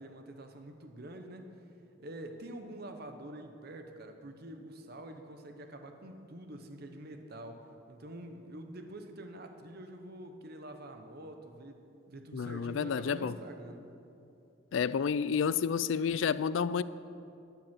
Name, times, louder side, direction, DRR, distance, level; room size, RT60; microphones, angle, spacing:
voice 1, 0.0-1.5 2.0-13.9, right 1 dB, 50° right, 6 dB, 1.0 m, -46 dB
voice 2, 12.3-13.3 14.7-16.8, left 6 dB, 75° left, 17 dB, 0.4 m, -30 dB
12.0 x 9.3 x 7.5 m, 2.7 s
head